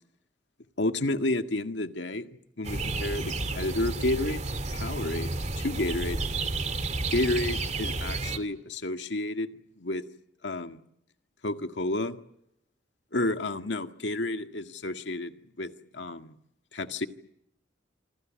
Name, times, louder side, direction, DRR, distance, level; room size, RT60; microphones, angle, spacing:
voice 1, 0.8-4.4 4.7-5.3 5.6-6.2 7.1-9.5 9.8-10.0 10.4-10.8 11.4-12.2 13.1-16.4 16.7-17.1, left 2 dB, 85° left, 7 dB, 1.8 m, -30 dB
sound 1, 2.6-8.4, right 2 dB, 40° right, 2.2 m, -31 dB
27.5 x 25.5 x 7.6 m, 0.78 s
head